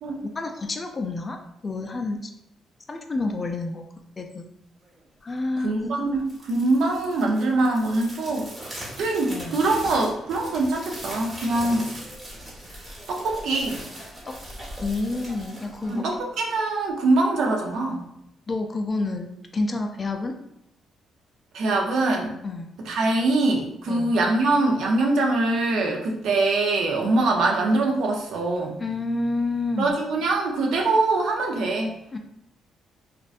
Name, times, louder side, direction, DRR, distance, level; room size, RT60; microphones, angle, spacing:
voice 1, 0.2-2.3 2.9-3.8 4.2-4.5 5.2-5.8 9.3-9.7 14.3-14.4 14.8-16.1 18.5-20.3 22.4-22.7 23.9-24.2 28.8-30.0 32.1-32.2, left 2 dB, 30° left, 4 dB, 0.3 m, -29 dB
voice 2, 5.6-8.5 9.0-11.9 13.1-13.8 15.9-18.1 21.5-22.3 22.8-28.8 29.8-32.0, right 2 dB, 75° right, 1 dB, 0.5 m, -23 dB
sound 1, 6.1-16.5, right 1 dB, 25° right, 1.0 m, -40 dB
2.5 x 2.1 x 2.4 m, 0.78 s
cardioid pair, 90°, 0 cm